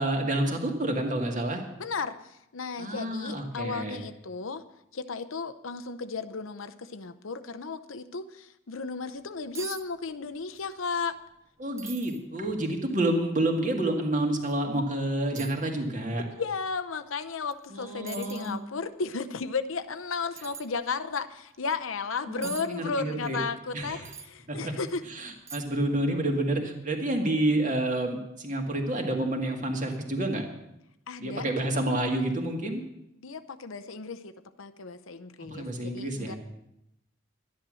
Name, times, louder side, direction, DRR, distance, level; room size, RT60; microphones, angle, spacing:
voice 1, 0.0-1.6 2.8-4.0 11.6-16.2 17.7-18.5 22.3-23.4 23.7-24.1 24.5-24.7 25.1-30.5 31.2-32.8 35.4-36.4, right 1 dB, 40° right, 2 dB, 2.0 m, -29 dB
voice 2, 1.8-2.2 2.5-4.6 4.9-11.2 16.2-25.0 31.1-31.9 33.2-36.4, left 4 dB, 90° left, 9 dB, 0.8 m, -34 dB
sound 1, 9.2-9.3 9.5-9.8 10.1-10.7 11.0-11.1 11.8-12.2 12.8-12.9 14.4-14.6 15.4-15.6 17.5-17.7 18.1-18.6 20.4-20.7 22.4-22.7 24.0-24.3 24.9-25.0 25.5-25.9 26.2-26.3, right 6 dB, 15° right, 0.5 m, -42 dB
12.5 x 10.5 x 6.3 m, 0.83 s
head